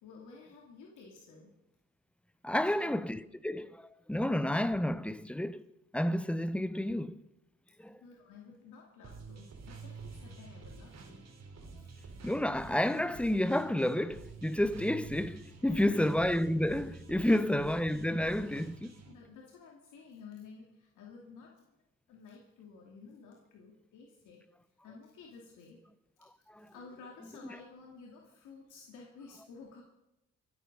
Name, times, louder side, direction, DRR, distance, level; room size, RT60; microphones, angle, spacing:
voice 1, 0.0-1.5 2.6-3.0 8.0-11.3 15.6-16.1 17.2-17.5 18.0-18.6 19.1-21.6 22.1-24.5 24.8-25.8 26.7-29.8, left 5 dB, 80° left, 2.7 m, -53 dB
voice 2, 2.4-5.7 5.9-7.2 7.8-8.0 12.2-18.9 26.5-26.7, left 1 dB, 5° left, 0.7 m, -30 dB
sound 1, 9.0-19.1, right 4 dB, 60° right, 3.3 m, -49 dB
25.0 x 8.4 x 5.4 m
cardioid pair, 90°, 30 cm